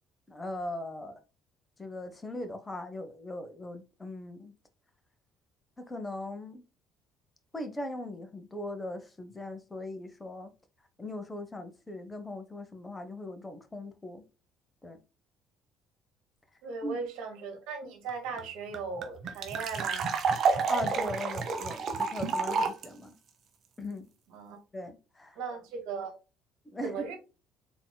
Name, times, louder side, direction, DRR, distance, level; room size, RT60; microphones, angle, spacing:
voice 1, 0.3-1.2 1.8-4.5 5.8-6.6 7.5-10.5 11.0-14.2 14.8-15.0 16.8-17.0 20.7-23.2 23.8-24.1 24.7-25.4 26.6-27.2, left 1 dB, 20° left, 1.2 m, -39 dB
voice 2, 16.6-20.1 24.3-24.6 25.3-26.2 26.8-27.2, right 4 dB, 70° right, 1.7 m, -38 dB
sound 1, 18.1-18.2 18.4-18.5 18.7-22.8, right 5 dB, 55° right, 1.0 m, -29 dB
4.0 x 3.9 x 2.2 m
hypercardioid pair, 60°, 0 cm